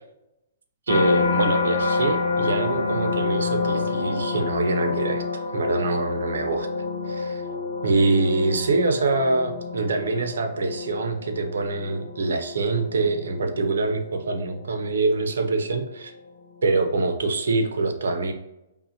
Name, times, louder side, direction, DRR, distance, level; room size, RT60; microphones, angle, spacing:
sound 1, 0.9-16.1 16.6-17.0, left 4 dB, 75° left, 0.6 m, -28 dB
voice 1, 0.9-6.7 7.0-7.4 7.8-16.1 16.6-18.3, right 3 dB, 85° right, 5 dB, 0.7 m, -24 dB
5.5 x 2.3 x 2.8 m, 0.88 s
hypercardioid pair, 140°, 0 cm